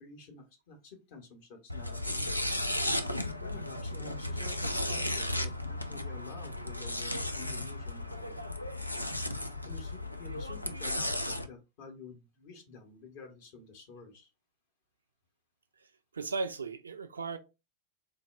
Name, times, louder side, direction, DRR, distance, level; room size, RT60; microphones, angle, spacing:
voice 1, 0.0-2.4 3.4-8.4 9.5-14.3, left 3 dB, 50° left, 1.1 m, -50 dB
sound 1, 1.7-11.5, left 1 dB, 85° left, 0.4 m, -35 dB
voice 2, 16.1-17.4, right 4 dB, 75° right, 0.5 m, -36 dB
3.9 x 2.3 x 3.3 m
figure-of-eight pair, 90°, 0 cm